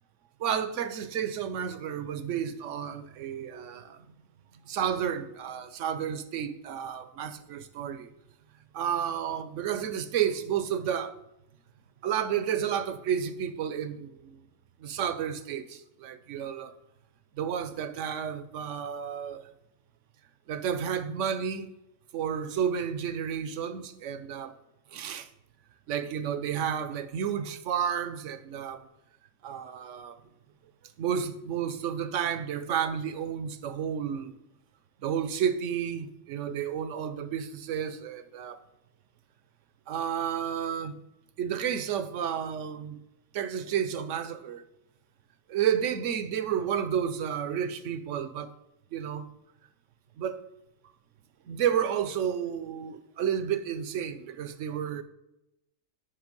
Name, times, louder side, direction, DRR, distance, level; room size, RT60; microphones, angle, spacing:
voice 1, 0.4-4.0 4.7-8.1 8.7-11.1 12.0-14.4 14.8-16.7 17.4-19.4 20.5-21.7 22.1-24.5 24.9-25.3 25.9-28.9 29.4-30.1 31.0-34.4 35.0-38.6 39.9-40.9 41.4-43.0 43.3-44.6 45.5-48.5 48.9-49.3 50.2-50.4 51.5-55.0, right 8 dB, 65° right, 1.0 m, -31 dB
8.8 x 5.6 x 5.2 m
omnidirectional pair, 1.5 m